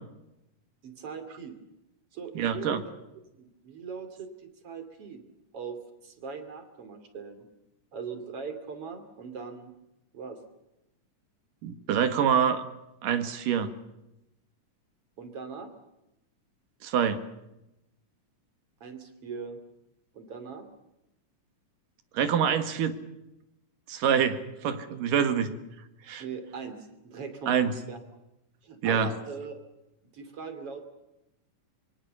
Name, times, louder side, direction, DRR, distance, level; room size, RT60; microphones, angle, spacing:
voice 1, 0.8-1.6 2.1-2.9 3.3-4.3 4.6-5.2 5.5-7.4 7.9-9.7 10.1-10.4 15.2-15.7 18.8-19.6 20.1-20.7 26.2-28.0 28.6-29.6 30.1-30.8, right 5 dB, 45° right, 9 dB, 3.6 m, -40 dB
voice 2, 2.3-2.8 11.6-12.6 13.0-13.7 16.8-17.3 22.1-23.0 23.9-25.6 26.1-26.2 27.5-27.7 28.8-29.1, right 8 dB, 80° right, 9 dB, 3.3 m, -26 dB
25.5 x 24.0 x 6.9 m, 0.90 s
omnidirectional pair, 3.7 m